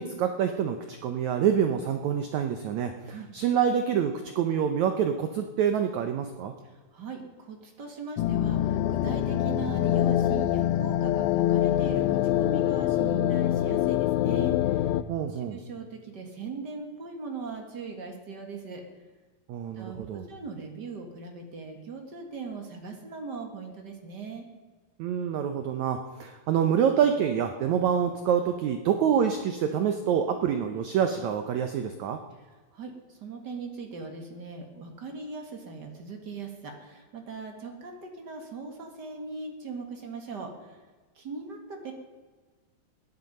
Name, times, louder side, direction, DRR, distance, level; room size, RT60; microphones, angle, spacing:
voice 1, 0.0-6.5 15.1-15.6 19.5-20.2 25.0-32.2, right 8 dB, 80° right, 7 dB, 1.6 m, -26 dB
voice 2, 6.6-14.9 15.3-18.8 19.8-24.5 32.7-40.8 41.1-41.9, right 4 dB, 45° right, 3 dB, 1.4 m, -40 dB
sound 1, 8.2-15.0, left 12 dB, 85° left, 2.5 m, -25 dB
17.0 x 10.5 x 5.4 m, 1.3 s
omnidirectional pair, 4.4 m